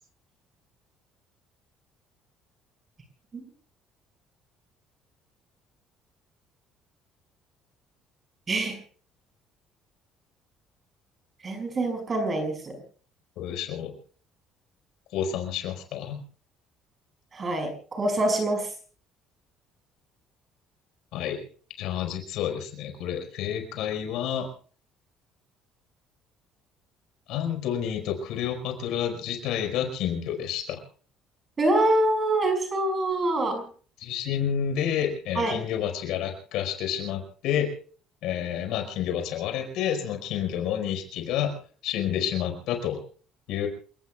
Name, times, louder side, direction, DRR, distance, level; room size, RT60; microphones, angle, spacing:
voice 1, 8.5-8.8 11.4-12.8 17.3-18.7 31.6-33.7 35.4-35.5, right 1 dB, 25° right, 6 dB, 5.5 m, -25 dB
voice 2, 13.4-13.9 15.1-16.2 21.1-21.4 21.8-24.5 27.3-30.8 34.0-37.7 38.2-41.6 41.8-43.0 43.5-43.7, left 9 dB, 75° left, 5 dB, 5.1 m, -29 dB
28.5 x 18.5 x 2.4 m, 0.42 s
cardioid pair, 160°, 0 cm